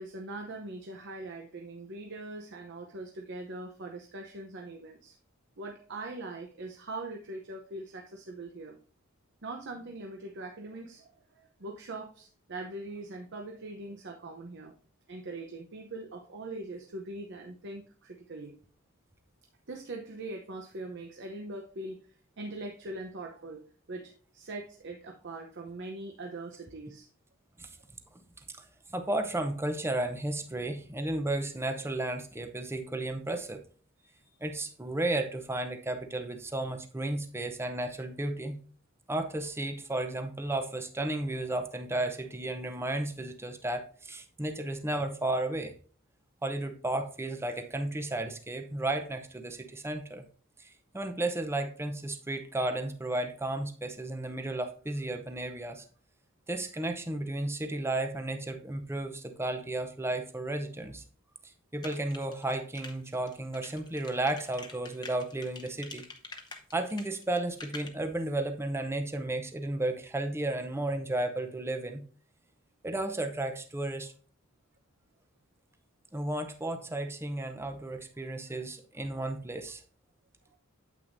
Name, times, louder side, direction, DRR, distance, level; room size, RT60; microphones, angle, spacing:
voice 1, 0.0-5.2 5.6-8.8 9.4-14.7 15.1-18.5 19.7-22.1 22.4-23.6 23.9-27.1 34.0-34.3, right 2 dB, 60° right, 2 dB, 0.8 m, -42 dB
voice 2, 28.6-33.6 34.4-38.6 39.1-45.7 46.4-50.2 50.6-55.8 56.5-61.0 61.4-66.0 66.7-72.0 72.8-74.1 76.1-79.8, right 2 dB, 10° right, 6 dB, 0.7 m, -33 dB
sound 1, 61.8-67.9, left 4 dB, 20° left, 0.9 m, -46 dB
8.9 x 8.1 x 2.6 m, 0.42 s
head